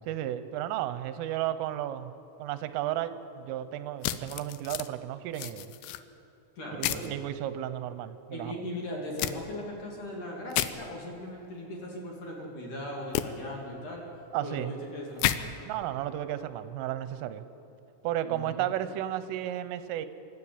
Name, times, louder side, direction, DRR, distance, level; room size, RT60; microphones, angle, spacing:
voice 1, 0.1-2.1 2.4-5.8 6.8-8.5 14.3-14.7 15.7-17.4 18.0-20.1, right 12 dB, 85° right, 13 dB, 3.3 m, -33 dB
sound 1, 4.0-4.9 5.3-6.0 6.8-7.1 9.2-9.3 10.5-10.7 13.1-13.2 15.2-15.4, left 14 dB, 85° left, 2.5 m, -30 dB
voice 2, 6.6-7.1 8.3-14.0 14.4-15.4 18.2-18.8, left 1 dB, 45° left, -1 dB, 3.5 m, -39 dB
25.0 x 12.5 x 8.8 m, 2.7 s
omnidirectional pair, 5.7 m